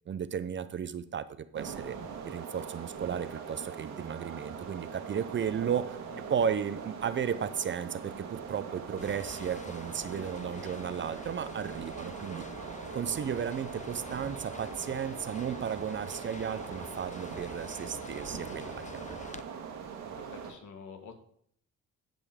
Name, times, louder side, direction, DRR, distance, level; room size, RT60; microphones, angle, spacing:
voice 1, 0.1-2.0 2.2-12.4 12.9-19.2, right 8 dB, 40° right, 13 dB, 0.6 m, -34 dB
sound 1, 1.5-20.5, right 6 dB, 80° right, 1.7 m, -42 dB
sound 2, 9.0-19.4, left 5 dB, 25° left, 0.6 m, -47 dB
voice 2, 20.1-21.2, left 5 dB, 75° left, 6 dB, 1.7 m, -48 dB
14.5 x 5.3 x 3.6 m, 0.65 s
cardioid pair, 90°, 30 cm